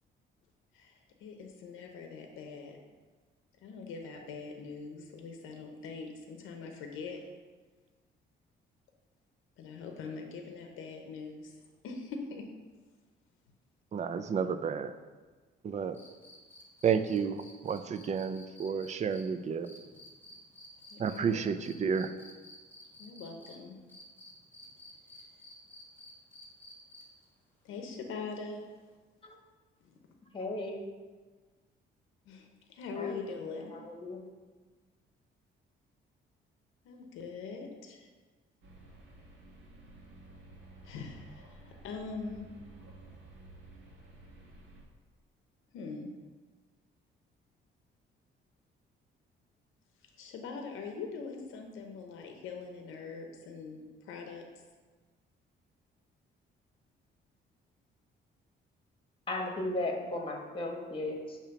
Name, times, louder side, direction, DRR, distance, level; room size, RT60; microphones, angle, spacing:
voice 1, 0.7-2.8 3.6-7.2 9.6-11.5 11.8-12.4 20.9-21.5 23.0-23.8 27.6-28.6 29.8-29.9 32.3-33.7 36.8-38.1 40.8-42.5 45.7-46.1 50.2-54.4, left 4 dB, 90° left, 3 dB, 0.7 m, -42 dB
voice 2, 13.9-14.9 15.6-16.0 16.8-19.7 21.0-22.1, right 6 dB, 35° right, 11 dB, 0.4 m, -31 dB
sound 1, 15.9-23.5 23.9-27.2 28.9-29.0, left 1 dB, 10° left, 1.5 m, -53 dB
voice 3, 30.3-30.8 32.9-34.2 59.3-61.4, left 2 dB, 25° left, 1 dB, 1.2 m, -36 dB
sound 2, 38.6-44.8, right 2 dB, 70° right, 1.4 m, -53 dB
6.6 x 3.0 x 5.7 m, 1.4 s
cardioid pair, 90°, 20 cm